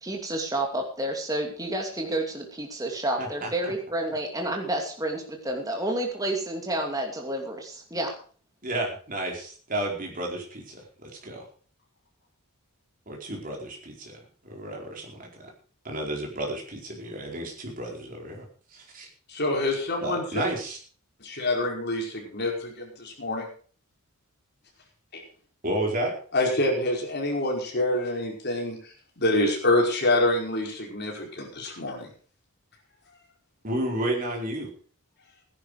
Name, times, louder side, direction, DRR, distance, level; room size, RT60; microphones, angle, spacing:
voice 1, 0.0-8.1, right 1 dB, 15° right, 1 dB, 2.7 m, -30 dB
voice 2, 3.2-3.7 8.6-11.4 13.1-15.5 15.8-18.5 18.7-19.1 20.0-20.8 25.6-26.1 33.6-34.7, right 1 dB, 40° right, 0 dB, 4.5 m, -32 dB
voice 3, 19.3-20.4 21.2-22.5 23.0-23.5 25.1-25.2 26.3-28.8 29.2-32.1, left 1 dB, 50° left, 0 dB, 5.1 m, -26 dB
16.0 x 11.0 x 4.9 m, 0.42 s
head